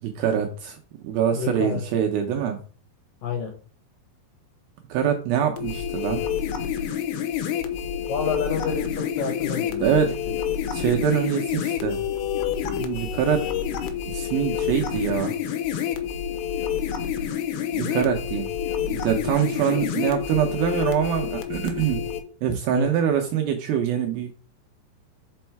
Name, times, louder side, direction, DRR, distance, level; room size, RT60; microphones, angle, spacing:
voice 1, 0.0-2.6 4.9-6.2 9.8-10.2 10.7-12.0 12.6-13.5 14.1-15.3 17.7-18.5 18.8-22.0 22.4-24.3, right 8 dB, 80° right, 3 dB, 2.2 m, -24 dB
voice 2, 1.3-1.8 3.2-3.5 8.1-10.0 19.7-19.8 22.7-22.9, left 5 dB, 65° left, 3 dB, 2.5 m, -29 dB
sound 1, 5.6-22.2, left 9 dB, 85° left, 2.9 m, -28 dB
5.4 x 5.3 x 4.5 m, 0.39 s
omnidirectional pair, 4.9 m